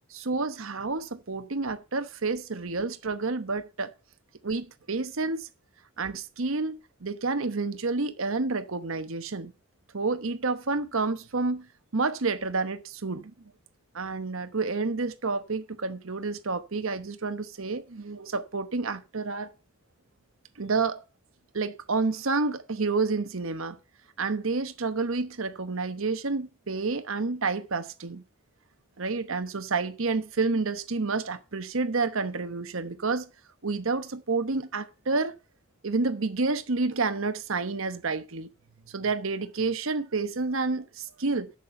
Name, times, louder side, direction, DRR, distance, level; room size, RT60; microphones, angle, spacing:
voice 1, 0.1-3.9 4.4-5.5 6.0-9.5 9.9-11.7 11.9-13.3 13.9-19.5 20.6-21.0 21.5-23.8 24.2-28.2 29.0-33.3 33.6-35.3 35.8-38.5 38.9-41.5, right 3 dB, 65° right, 1.0 m, -29 dB
7.5 x 6.8 x 7.8 m
head